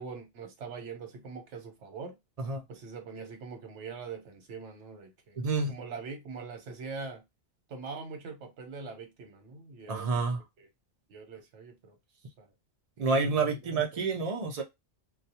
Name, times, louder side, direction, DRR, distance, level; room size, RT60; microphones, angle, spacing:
voice 1, 0.0-2.1 2.7-7.2 7.7-10.7 11.1-12.0 12.4-12.5 13.0-14.0, right 5 dB, 85° right, 1.1 m, -43 dB
voice 2, 5.4-5.7 9.9-10.4 13.0-14.6, right 4 dB, 45° right, 0.5 m, -28 dB
2.3 x 2.2 x 2.7 m
omnidirectional pair, 1.2 m